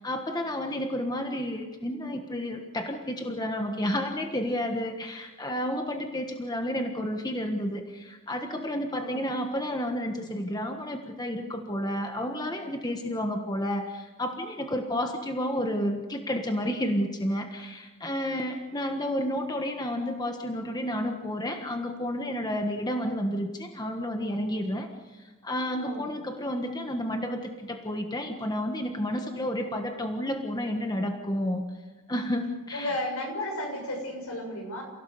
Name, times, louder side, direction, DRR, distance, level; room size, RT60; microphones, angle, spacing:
voice 1, 0.0-24.9 25.1-31.6 32.1-32.9, equal, 20° left, 4 dB, 1.4 m, -31 dB
voice 2, 32.7-34.8, left 1 dB, 75° left, 3 dB, 6.9 m, -33 dB
29.0 x 16.5 x 6.7 m, 1.2 s
head